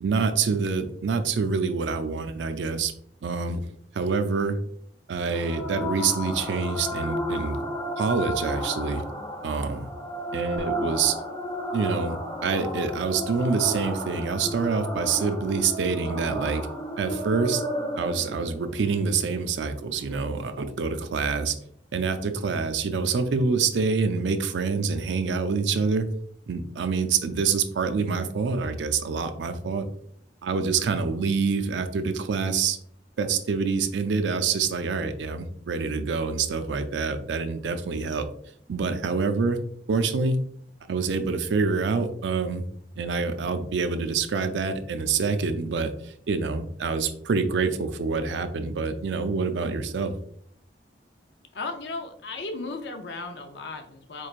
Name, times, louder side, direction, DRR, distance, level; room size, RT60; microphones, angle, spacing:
voice 1, 0.0-2.9 3.2-3.6 3.9-4.6 5.1-7.6 8.0-9.0 9.4-9.9 10.3-11.2 11.7-16.6 17.0-17.6 18.0-21.6 21.9-26.1 26.5-29.9 30.4-32.8 33.2-38.3 38.7-39.6 39.9-40.4 40.9-42.6 43.0-45.9 46.3-50.1, right 5 dB, 90° right, 9 dB, 0.4 m, -26 dB
sound 1, 5.3-20.3, equal, 25° left, 0.7 m, -33 dB
voice 2, 51.5-54.3, left 3 dB, 70° left, 6 dB, 0.5 m, -35 dB
4.3 x 3.1 x 2.4 m, 0.66 s
head